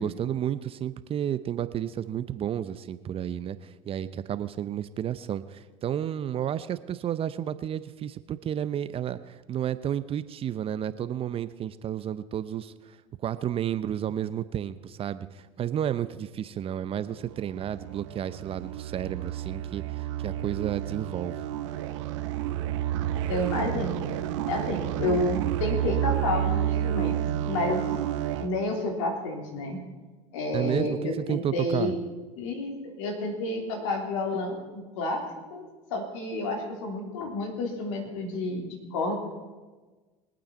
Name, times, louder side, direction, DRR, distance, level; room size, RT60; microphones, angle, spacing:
voice 1, 0.0-13.0 13.2-21.4 30.5-31.9, right 10 dB, 35° right, 14 dB, 0.7 m, -32 dB
sound 1, 17.1-28.5, right 12 dB, 70° right, 1.0 m, -30 dB
voice 2, 23.1-24.0 24.5-27.2 27.4-27.9 28.4-29.9 30.3-32.0 32.4-35.2 35.5-39.2, left 2 dB, 70° left, 1 dB, 3.3 m, -30 dB
23.0 x 8.9 x 4.4 m, 1.3 s
hypercardioid pair, 80°, 16 cm